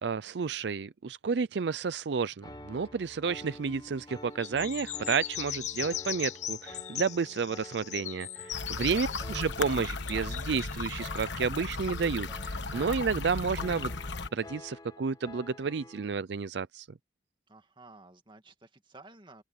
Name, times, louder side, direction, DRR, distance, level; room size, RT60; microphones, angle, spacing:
voice 1, 0.0-13.9 14.3-16.9, right 5 dB, 70° right, 0.5 m, -31 dB
Piano, 2.4-16.1, left 1 dB, 20° left, 1.1 m, -49 dB
sound 1, 4.4-11.0 11.6-13.1, left 12 dB, 40° left, 0.4 m, -39 dB
sound 2, 8.5-14.3, left 3 dB, 80° left, 1.3 m, -36 dB
voice 2, 8.9-9.2 17.5-19.4, right 2 dB, 25° right, 2.2 m, -53 dB
open air
head